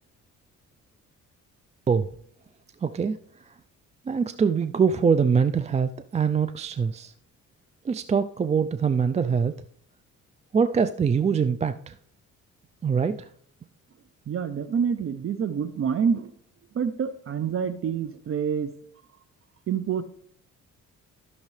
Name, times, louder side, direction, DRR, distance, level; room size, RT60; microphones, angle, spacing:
voice 1, 2.8-3.2 4.1-7.1 7.8-9.5 10.5-11.9 12.8-13.3, right 6 dB, 25° right, 11 dB, 0.4 m, -23 dB
voice 2, 14.3-16.3 16.7-18.7 19.7-20.0, right 7 dB, 45° right, 12 dB, 0.7 m, -27 dB
13.5 x 6.5 x 3.2 m, 0.64 s
cardioid pair, 90°, 30 cm